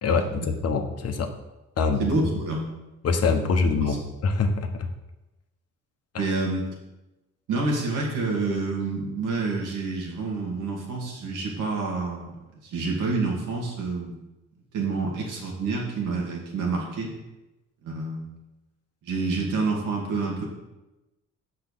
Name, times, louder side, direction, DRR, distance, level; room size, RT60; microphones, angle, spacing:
voice 1, 0.0-1.3 1.8-2.0 3.0-4.9 6.1-6.3, left 4 dB, 55° left, 6 dB, 1.1 m, -24 dB
voice 2, 2.0-2.6 3.8-4.0 6.2-6.7 7.5-12.4 12.6-14.2 14.7-17.1 17.8-18.2 19.0-20.5, right 3 dB, 90° right, -1 dB, 2.1 m, -28 dB
6.9 x 4.8 x 6.3 m, 1.0 s
cardioid pair, 90°, 30 cm